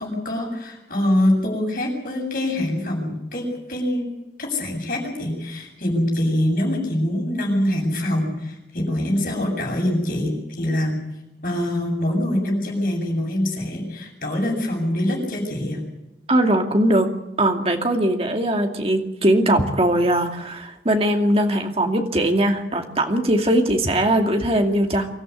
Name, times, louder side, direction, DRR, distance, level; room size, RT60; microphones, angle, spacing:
voice 1, 0.0-4.1 4.4-11.0 11.4-15.8, left 1 dB, 50° left, 1 dB, 7.9 m, -24 dB
voice 2, 16.3-17.1 17.4-25.1, right 1 dB, 35° right, 3 dB, 2.5 m, -20 dB
25.0 x 14.0 x 9.9 m, 0.92 s
head